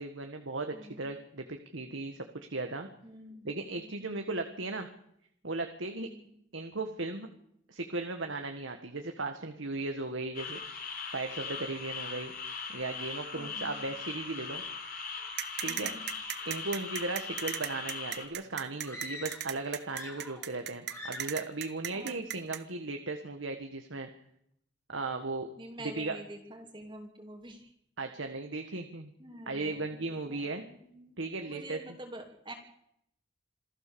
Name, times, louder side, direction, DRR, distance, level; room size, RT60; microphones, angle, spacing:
voice 1, 0.0-2.9 3.4-4.9 5.4-6.1 6.5-7.3 7.7-12.3 12.7-14.6 15.6-15.9 16.4-24.1 24.9-25.5 26.0-26.2 28.0-29.1 29.5-30.6 31.2-31.8, right 3 dB, 75° right, 5 dB, 1.6 m, -36 dB
voice 2, 0.7-1.1 3.0-3.4 3.8-4.3 6.0-6.3 13.3-13.8 15.7-16.1 21.9-22.2 25.6-27.7 29.2-31.2 31.4-32.5, right 1 dB, 25° right, 1 dB, 2.7 m, -47 dB
sound 1, 10.3-18.3, left 5 dB, 45° left, 3.9 m, -40 dB
sound 2, 15.4-22.6, right 11 dB, 55° right, 1.2 m, -36 dB
sound 3, 18.8-19.6 19.8-20.6 20.9-21.4, left 1 dB, 15° left, 3.3 m, -44 dB
27.0 x 15.0 x 7.0 m, 0.75 s
head